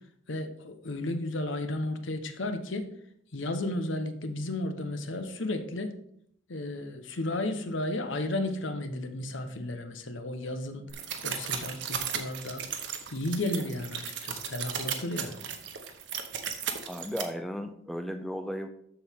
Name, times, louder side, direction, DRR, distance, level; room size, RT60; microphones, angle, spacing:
voice 1, 0.3-2.9 3.3-6.0 6.5-10.8 11.2-12.6 13.1-15.5, left 1 dB, 70° left, 8 dB, 0.9 m, -33 dB
sound 1, 10.9-17.2, right 8 dB, 60° right, 1.0 m, -35 dB
voice 2, 16.9-18.7, equal, ahead, 7 dB, 0.4 m, -35 dB
13.0 x 4.6 x 3.6 m, 0.69 s
head